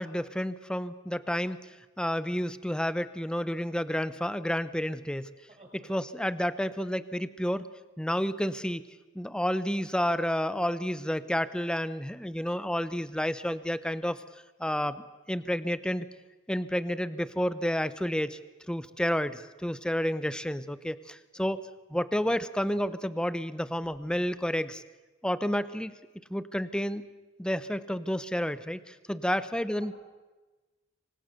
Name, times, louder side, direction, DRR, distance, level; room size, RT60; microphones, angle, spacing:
voice 1, 0.0-1.6 2.0-5.3 5.9-7.7 8.0-8.8 9.1-14.2 14.6-16.1 16.5-18.4 18.7-21.6 21.9-24.8 25.2-25.9 26.3-27.0 27.4-30.0, equal, 5° left, 14 dB, 0.9 m, -30 dB
voice 2, 5.5-5.9 21.3-21.5 29.2-30.0, right 2 dB, 35° right, -1 dB, 7.8 m, -54 dB
27.0 x 25.0 x 6.8 m, 1.2 s
head